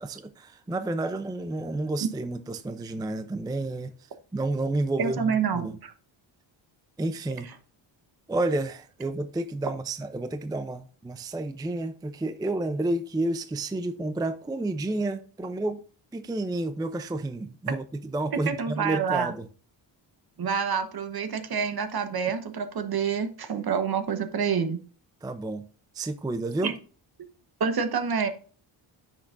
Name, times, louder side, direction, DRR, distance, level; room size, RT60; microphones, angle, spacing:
voice 1, 0.0-3.9 4.3-5.8 7.0-7.5 8.3-15.8 16.1-19.5 25.2-25.7 25.9-26.8, right 2 dB, 10° right, 0.4 m, -30 dB
voice 2, 5.0-5.9 18.3-19.3 20.4-24.8 26.6-26.7 27.6-28.3, right 6 dB, 50° right, 1.1 m, -27 dB
9.9 x 6.4 x 2.5 m
cardioid pair, 110°, 47 cm